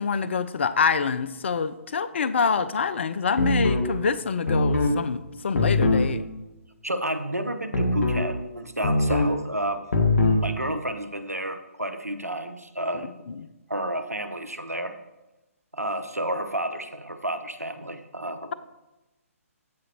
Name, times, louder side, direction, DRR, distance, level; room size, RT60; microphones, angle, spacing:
voice 1, 0.0-6.2 13.3-13.5, left 5 dB, 50° left, 15 dB, 0.4 m, -26 dB
sound 1, 3.4-3.9 4.5-4.9 5.5-6.1 7.7-8.3 8.8-9.3 9.9-10.4, left 2 dB, 65° left, 1.5 m, -21 dB
voice 2, 6.8-9.8 10.4-13.1 13.7-15.0 15.7-18.5, right 1 dB, 85° right, 9 dB, 0.8 m, -31 dB
15.0 x 5.1 x 2.9 m, 1.0 s
figure-of-eight pair, 135°, 8 cm